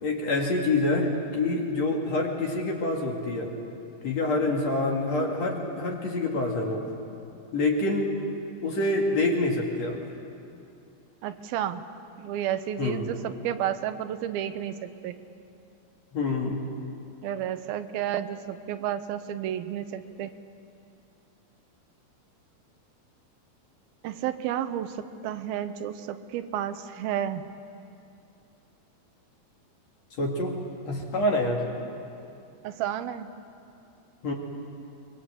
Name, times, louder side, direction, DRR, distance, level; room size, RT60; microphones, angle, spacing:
voice 1, 0.0-3.5 4.0-6.8 7.5-8.1 8.6-10.0 12.8-13.1 16.1-16.6 30.2-30.6 30.9-31.6 34.2-34.3, left 2 dB, 50° left, 0 dB, 3.1 m, -26 dB
voice 2, 11.2-11.8 12.2-15.2 17.2-20.3 24.0-27.4 32.6-33.3, right 10 dB, 80° right, 11 dB, 2.6 m, -31 dB
23.0 x 23.0 x 8.1 m, 2.6 s
omnidirectional pair, 4.3 m